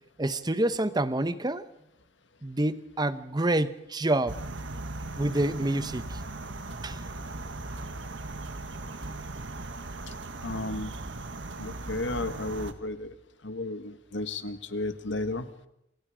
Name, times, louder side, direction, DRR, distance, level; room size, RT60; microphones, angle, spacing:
voice 1, 0.2-1.7 2.4-4.4 5.2-6.2 6.8-7.0, right 1 dB, 20° right, 0.9 m, -27 dB
sound 1, 4.3-12.7, right 2 dB, 75° right, 1.6 m, -38 dB
voice 2, 10.4-11.0 11.6-13.1 13.4-15.5, left 2 dB, 75° left, 1.8 m, -33 dB
29.0 x 26.0 x 5.1 m
head